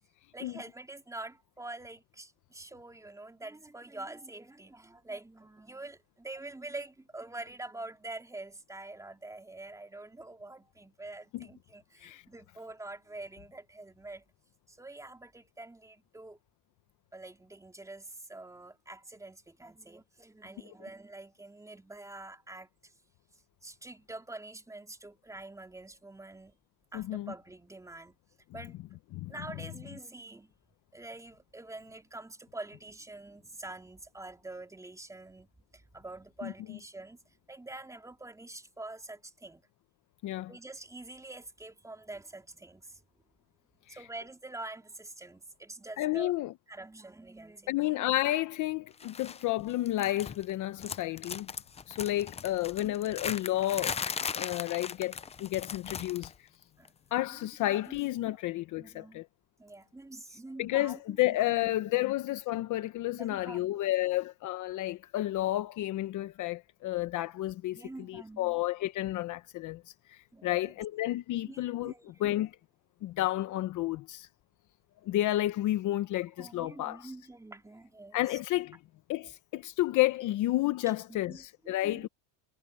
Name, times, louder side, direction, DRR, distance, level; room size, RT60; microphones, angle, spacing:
voice 1, 0.3-14.2 14.7-16.4 17.1-22.9 23.6-26.6 26.9-28.2 28.5-28.8 29.3-30.5 30.9-39.6 40.5-43.0 43.9-46.3 46.7-48.0 52.8-53.0 56.8-56.9 57.9-58.0 58.3-58.4 58.8-59.2 59.6-62.0 63.2-63.7 64.0-64.2 67.7-68.6 70.3-70.7 71.4-72.5 76.4-78.4 81.1-82.1, right 2 dB, 5° right, 3.7 m, -46 dB
voice 2, 26.9-27.3 29.1-29.3 36.4-36.8 40.2-40.5 43.9-44.0 46.0-46.5 47.7-51.5 51.9-54.0 54.3-56.5 57.1-59.3 60.6-67.8 68.1-69.8 70.1-71.9 72.2-72.5 73.0-74.3 75.0-77.1 78.1-78.8 79.1-82.1, left 15 dB, 45° left, 1.0 m, -31 dB
sound 1, 49.0-49.4 49.7-50.5 50.8-56.4 56.6-56.9 58.0-58.1, left 6 dB, 15° left, 0.6 m, -38 dB
supercardioid pair, 135°, 44 cm